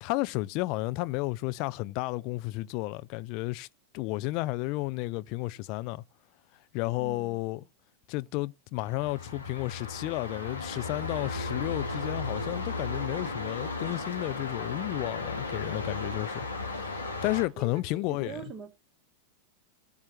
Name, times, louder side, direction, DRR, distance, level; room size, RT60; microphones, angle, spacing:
voice 1, 0.0-3.7 3.9-6.0 6.7-7.6 8.1-16.9 17.2-18.3, left 20 dB, 45° left, 0.5 m, -32 dB
voice 2, 7.0-7.4 17.6-17.8 18.1-18.7, right 4 dB, 20° right, 2.6 m, -42 dB
sound 1, 8.8-17.5, left 3 dB, 80° left, 2.3 m, -35 dB
20.0 x 7.2 x 3.0 m
figure-of-eight pair, 90°, 0 cm